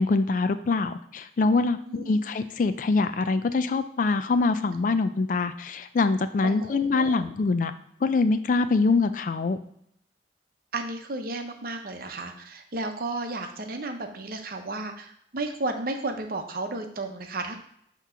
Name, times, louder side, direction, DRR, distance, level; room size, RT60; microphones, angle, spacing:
voice 1, 0.0-7.7 8.0-9.6, left 3 dB, 45° left, 11 dB, 0.3 m, -24 dB
voice 2, 1.8-2.1 6.4-7.2 10.7-17.6, right 2 dB, 55° right, 5 dB, 0.7 m, -33 dB
6.0 x 3.0 x 5.6 m, 0.71 s
head